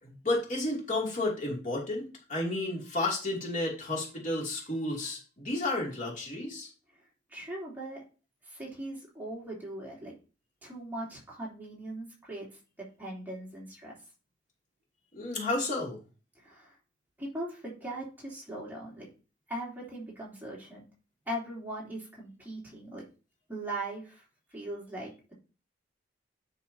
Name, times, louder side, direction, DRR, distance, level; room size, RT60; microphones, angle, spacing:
voice 1, 0.0-2.0 2.3-6.7 15.1-16.0, left 2 dB, 40° left, -3 dB, 2.7 m, -32 dB
voice 2, 7.3-8.0 8.4-10.1 10.6-14.0 16.3-16.8 17.2-19.1 19.5-20.8 21.3-23.0 23.5-24.2 24.5-25.1, right 1 dB, 10° right, -5 dB, 3.3 m, -40 dB
10.0 x 6.8 x 2.8 m, 0.34 s
head